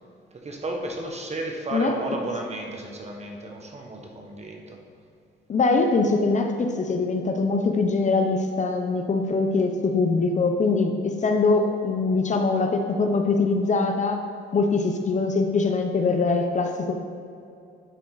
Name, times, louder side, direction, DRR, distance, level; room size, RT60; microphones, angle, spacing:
voice 1, 0.3-4.8, right 2 dB, 35° right, 1 dB, 1.2 m, -33 dB
voice 2, 5.5-14.2 14.5-16.9, left 3 dB, 35° left, 4 dB, 0.7 m, -23 dB
10.0 x 4.3 x 4.0 m, 2.5 s
cardioid pair, 90°, 20 cm